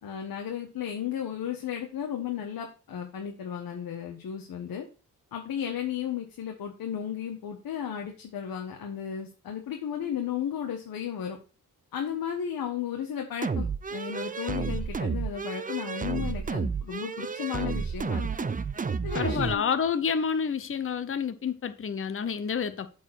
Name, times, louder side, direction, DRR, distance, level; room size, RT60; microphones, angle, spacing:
voice 1, 0.0-4.9 5.3-11.4 11.9-18.5 19.0-19.6, left 9 dB, 75° left, 1.5 m, -34 dB
sound 1, 13.4-19.6, right 5 dB, 25° right, 0.6 m, -31 dB
voice 2, 19.1-22.9, left 6 dB, 35° left, 0.9 m, -29 dB
8.6 x 4.8 x 6.0 m
cardioid pair, 85°, 35 cm